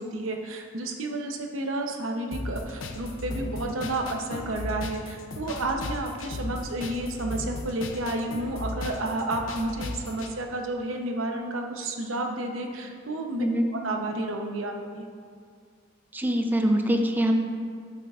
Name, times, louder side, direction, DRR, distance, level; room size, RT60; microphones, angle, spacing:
voice 1, 0.0-13.4 13.8-15.0, right 2 dB, 90° right, 3 dB, 0.8 m, -31 dB
sound 1, 2.3-10.3, left 2 dB, 75° left, 0.6 m, -36 dB
voice 2, 16.1-17.4, equal, 10° right, 4 dB, 0.5 m, -23 dB
11.5 x 5.8 x 2.4 m, 2.1 s
head